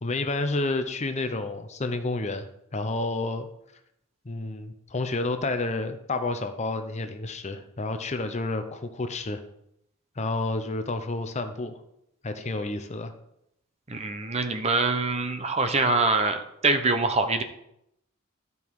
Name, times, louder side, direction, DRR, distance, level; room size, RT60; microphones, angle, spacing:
voice 1, 0.0-3.5 4.2-9.4 10.2-11.7 12.2-13.1, left 2 dB, 30° left, 8 dB, 0.7 m, -30 dB
voice 2, 13.9-17.4, right 3 dB, 30° right, 8 dB, 0.8 m, -24 dB
12.0 x 5.5 x 4.7 m, 0.79 s
head